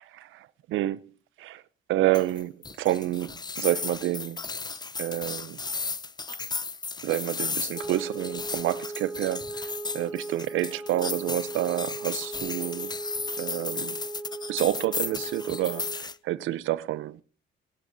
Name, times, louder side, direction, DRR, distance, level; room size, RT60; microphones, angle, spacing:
voice 1, 0.7-1.0 1.4-1.6 1.9-2.5 2.8-4.4 5.0-5.6 7.0-9.7 9.9-12.9 13.4-14.0 14.5-17.2, right 14 dB, 85° right, 0.6 m, -28 dB
sound 1, 2.1-16.2, left 4 dB, 20° left, 0.6 m, -35 dB
sound 2, 7.7-16.1, right 3 dB, 5° right, 1.7 m, -38 dB
20.0 x 11.0 x 2.6 m
cardioid pair, 90°, 20 cm